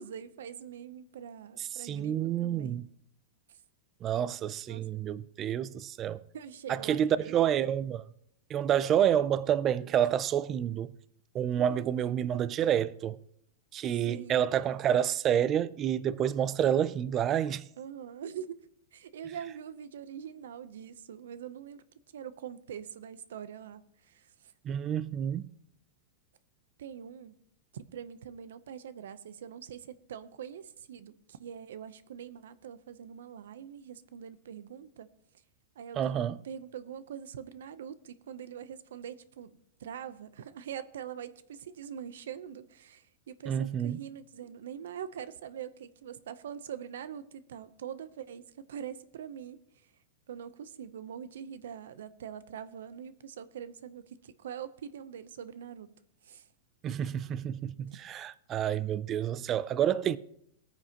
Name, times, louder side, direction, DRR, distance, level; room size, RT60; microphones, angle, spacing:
voice 1, 0.0-2.8 4.7-4.8 6.3-7.5 11.5-12.0 14.1-14.4 17.8-18.6 18.9-21.8 22.1-24.3 26.8-27.4 27.7-35.1 35.8-49.6 50.3-55.9 56.2-56.4 57.9-58.0, right 8 dB, 85° right, 0.7 m, -43 dB
voice 2, 1.6-2.9 4.0-6.2 6.7-8.0 8.5-10.9 11.3-13.2 13.7-17.7 24.6-25.5 36.0-36.4 43.5-44.0 56.8-60.2, right 10 dB, 20° right, 0.3 m, -29 dB
19.5 x 9.4 x 2.9 m
supercardioid pair, 170°, 0 cm